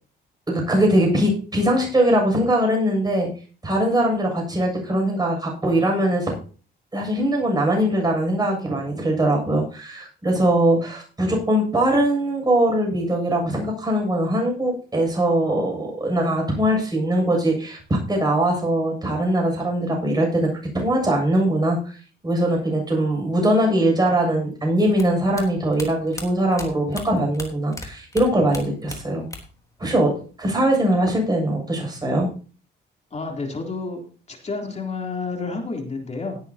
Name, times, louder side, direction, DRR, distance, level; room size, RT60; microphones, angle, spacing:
voice 1, 0.5-6.4 6.9-29.3 29.8-32.4, right 1 dB, 20° right, 1 dB, 7.3 m, -21 dB
sound 1, 24.9-27.9 28.1-29.6 29.9-30.7, left 2 dB, 15° left, 3.4 m, -37 dB
voice 2, 33.1-34.0 34.3-36.4, left 3 dB, 35° left, 2 dB, 3.5 m, -30 dB
18.0 x 9.1 x 2.9 m, 0.38 s
cardioid pair, 90°, 20 cm